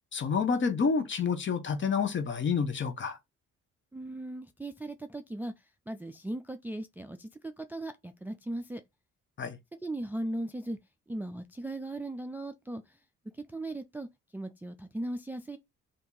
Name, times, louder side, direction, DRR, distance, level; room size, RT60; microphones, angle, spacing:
voice 1, 0.1-3.2 9.4-9.6, left 5 dB, 40° left, 0.8 m, -29 dB
voice 2, 3.9-8.8 9.8-10.8 11.1-13.0 13.3-14.1 14.3-15.6, right 1 dB, 5° right, 0.4 m, -38 dB
2.7 x 2.6 x 3.8 m
cardioid pair, 90°, 30 cm